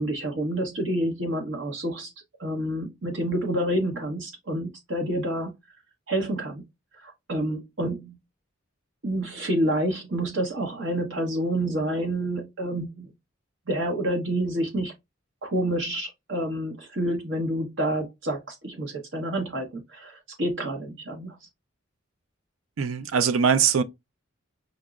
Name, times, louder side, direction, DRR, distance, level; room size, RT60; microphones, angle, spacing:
voice 1, 0.0-2.1 2.4-5.5 6.1-6.6 6.9-8.2 9.0-13.1 13.7-14.9 15.4-21.4, right 1 dB, 70° right, 1.0 m, -28 dB
voice 2, 22.8-23.8, right 7 dB, 85° right, 0.4 m, -21 dB
5.2 x 2.0 x 2.3 m
head